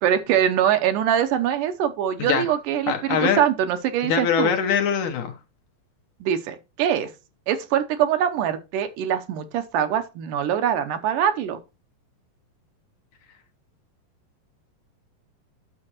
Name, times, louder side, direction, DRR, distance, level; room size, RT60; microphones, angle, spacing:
voice 1, 0.0-4.5 6.2-7.1 7.5-11.6, right 9 dB, 75° right, 2.2 m, -23 dB
voice 2, 2.9-3.4 4.0-5.4, left 7 dB, 70° left, 2.1 m, -22 dB
9.8 x 6.8 x 2.9 m
omnidirectional pair, 4.0 m